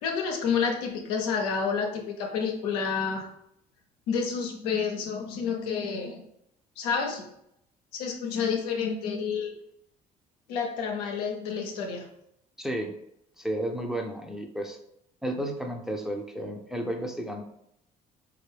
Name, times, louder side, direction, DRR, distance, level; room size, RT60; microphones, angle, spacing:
voice 1, 0.0-3.3 4.1-6.2 6.8-7.3 7.9-9.5 10.5-12.1, left 6 dB, 80° left, 2 dB, 0.6 m, -29 dB
voice 2, 12.6-12.9 13.4-14.8 15.2-17.4, right 1 dB, ahead, 3 dB, 0.6 m, -32 dB
4.3 x 2.4 x 3.3 m, 0.78 s
hypercardioid pair, 55°, 20 cm